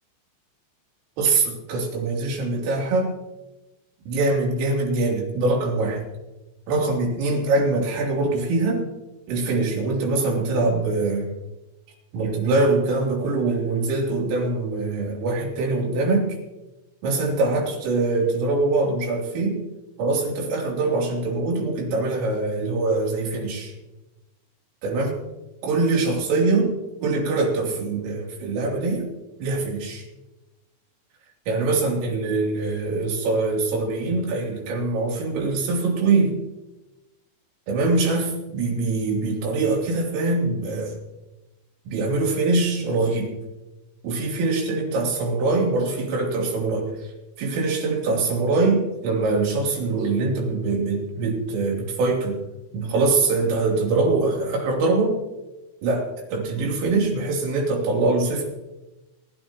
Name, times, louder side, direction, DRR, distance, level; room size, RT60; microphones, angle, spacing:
voice 1, 1.2-3.2 4.1-6.0 6.7-8.9 9.3-11.3 12.1-16.4 17.0-19.6 20.0-23.7 24.8-25.2 25.6-26.7 27.0-29.1 29.4-30.0 31.5-36.4 37.7-40.9 41.9-43.3 44.0-47.1 47.4-52.4 52.7-55.2 55.8-58.5, right 3 dB, 85° right, -1 dB, 5.7 m, -23 dB
25.0 x 14.0 x 3.0 m, 1.1 s
omnidirectional pair, 5.7 m